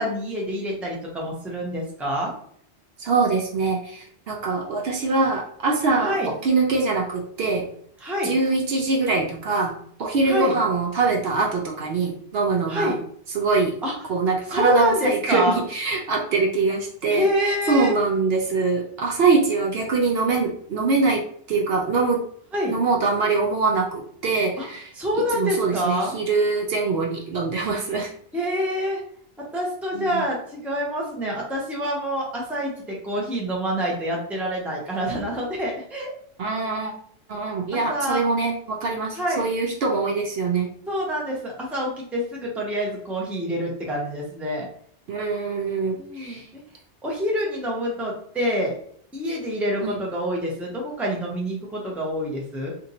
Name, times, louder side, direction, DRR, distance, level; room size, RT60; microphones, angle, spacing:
voice 1, 0.0-2.3 6.0-6.3 8.0-8.3 10.2-10.5 12.7-13.0 13.8-13.9 14.5-15.6 17.1-17.9 22.5-22.7 24.6-24.7 25.0-26.1 28.3-29.0 29.4-36.1 37.7-38.2 39.1-39.5 40.9-44.7 46.0-46.6 47.0-48.7 49.1-52.7, equal, ahead, -2 dB, 0.6 m, -26 dB
voice 2, 3.0-7.7 8.2-9.7 10.0-12.9 13.3-13.7 14.1-22.2 22.7-28.1 29.9-30.3 36.4-36.9 37.3-40.7 45.1-46.5 49.8-49.9, right 4 dB, 65° right, 1 dB, 0.7 m, -23 dB
2.6 x 2.5 x 4.0 m, 0.62 s
omnidirectional pair, 1.2 m